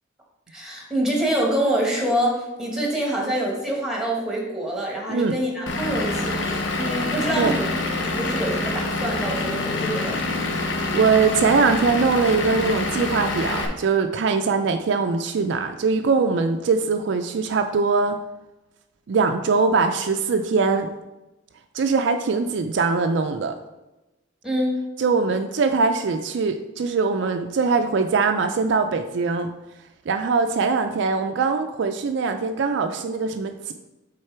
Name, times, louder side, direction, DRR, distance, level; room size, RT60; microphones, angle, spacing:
voice 1, 0.5-7.7 8.0-10.1 24.4-24.8, right 1 dB, 5° right, -1 dB, 1.3 m, -26 dB
Vehicle / Engine, 5.7-13.7, left 2 dB, 70° left, 0.8 m, -26 dB
voice 2, 10.9-18.2 19.1-20.9 21.7-23.5 25.0-29.5 30.1-33.7, right 4 dB, 60° right, 6 dB, 0.4 m, -22 dB
6.5 x 3.8 x 4.5 m, 1.0 s
head